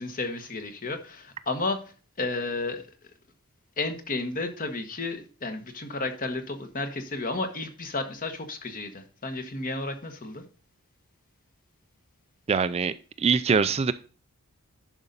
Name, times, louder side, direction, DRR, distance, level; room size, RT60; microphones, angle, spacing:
voice 1, 0.0-2.8 3.8-10.4, left 3 dB, 40° left, 1.2 m, -32 dB
voice 2, 12.5-13.9, right 5 dB, 25° right, 0.3 m, -24 dB
11.0 x 5.4 x 3.9 m
head